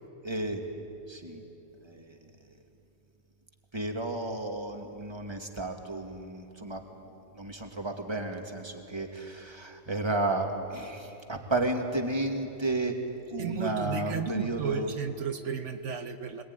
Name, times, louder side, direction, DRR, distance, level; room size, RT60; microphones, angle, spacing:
voice 1, 0.2-0.6 1.1-1.4 1.8-2.2 3.7-6.8 7.4-13.0 13.3-14.9, right 2 dB, 20° right, 3 dB, 2.0 m, -32 dB
voice 2, 13.4-16.4, right 7 dB, 75° right, 7 dB, 1.3 m, -33 dB
23.0 x 20.0 x 9.6 m, 3.0 s
omnidirectional pair, 1.3 m